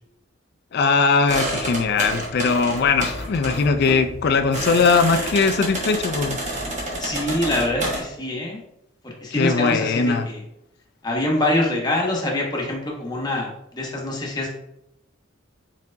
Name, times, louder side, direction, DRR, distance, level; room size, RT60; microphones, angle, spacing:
voice 1, 0.7-6.4 9.3-10.3, left 4 dB, 55° left, 9 dB, 0.4 m, -20 dB
sound 1, 1.3-8.0, right 1 dB, 40° right, 1.1 m, -29 dB
voice 2, 7.0-8.6 9.0-10.4 11.0-14.5, left 1 dB, 20° left, -2 dB, 0.9 m, -25 dB
4.4 x 4.1 x 2.5 m, 0.81 s
head